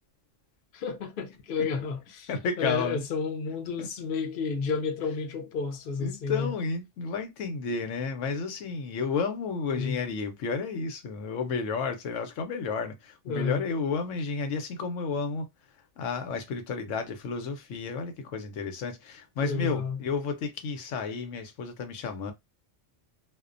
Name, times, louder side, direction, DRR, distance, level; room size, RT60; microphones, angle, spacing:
voice 1, 0.7-2.3 2.6-6.5 9.7-10.0 13.3-13.6 19.4-20.0, left 5 dB, 55° left, 0.7 m, -31 dB
voice 2, 2.3-3.0 3.8-3.9 6.0-15.5 16.0-22.3, left 5 dB, 85° left, 1.0 m, -32 dB
2.4 x 2.1 x 2.4 m
omnidirectional pair, 1.3 m